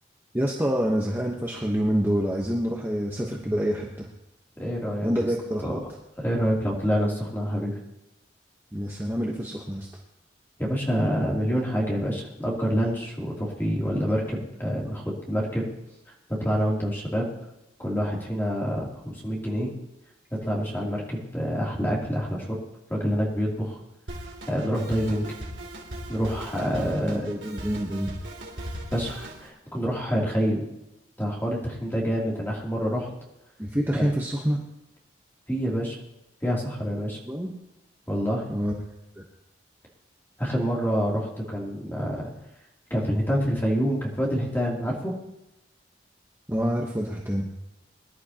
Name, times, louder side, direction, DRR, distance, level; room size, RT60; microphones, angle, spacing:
voice 1, 0.3-4.1 5.0-5.8 8.7-9.9 27.0-28.1 33.6-34.6 37.2-37.5 38.5-38.7 39.2-39.3 46.5-47.5, equal, 10° right, -2 dB, 1.0 m, -27 dB
voice 2, 4.6-5.1 5.6-5.7 6.2-7.8 10.6-15.6 16.3-17.2 17.8-19.7 20.3-22.6 22.9-23.8 24.5-25.3 26.1-27.3 28.9-30.6 31.2-33.1 33.9-34.1 35.5-36.0 36.4-37.2 38.1-38.4 40.4-42.3 42.9-45.1, equal, 10° left, -4 dB, 2.9 m, -27 dB
Drum kit, 24.1-29.5, right 1 dB, 70° right, 2.8 m, -38 dB
22.5 x 11.5 x 2.9 m, 0.90 s
head